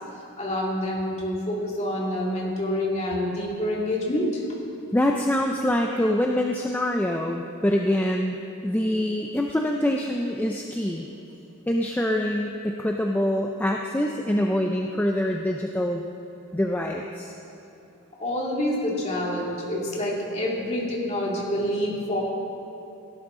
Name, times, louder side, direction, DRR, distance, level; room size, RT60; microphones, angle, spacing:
voice 1, 0.4-4.4 18.2-22.2, left 1 dB, 30° left, -4 dB, 2.3 m, -27 dB
voice 2, 4.9-8.4 8.6-11.1 11.7-16.1 16.5-17.3, left 1 dB, 10° left, 1 dB, 0.4 m, -25 dB
17.5 x 11.0 x 3.7 m, 2.9 s
head